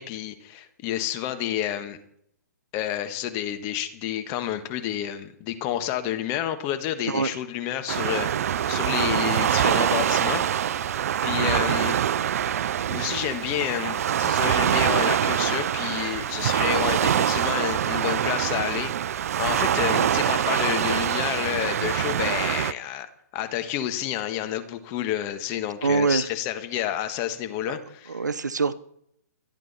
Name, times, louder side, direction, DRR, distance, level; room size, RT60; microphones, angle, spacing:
voice 1, 0.0-2.0 2.7-10.4 11.2-12.0 12.9-23.1 23.3-28.2, left 11 dB, 30° left, 1.6 m, -29 dB
Waves surf, 7.9-22.7, right 9 dB, 55° right, 0.5 m, -24 dB
voice 2, 25.8-26.2 27.7-27.8 28.1-28.7, right 4 dB, 85° right, 0.9 m, -24 dB
26.0 x 9.0 x 4.3 m
hypercardioid pair, 130°, 9 cm